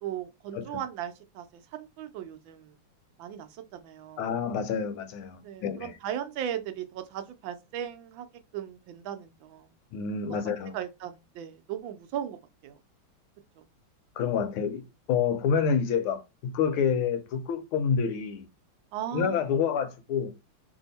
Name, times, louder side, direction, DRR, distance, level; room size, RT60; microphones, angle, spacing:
voice 1, 0.0-2.7 3.2-4.2 5.4-8.3 8.5-9.7 10.7-12.4 12.6-12.8 13.6-13.7 18.9-19.5, right 10 dB, 75° right, 1.3 m, -37 dB
voice 2, 4.2-5.9 9.9-10.7 14.2-14.8 15.1-18.4 19.1-20.3, left 6 dB, 90° left, 1.6 m, -28 dB
3.4 x 2.7 x 3.9 m
omnidirectional pair, 2.3 m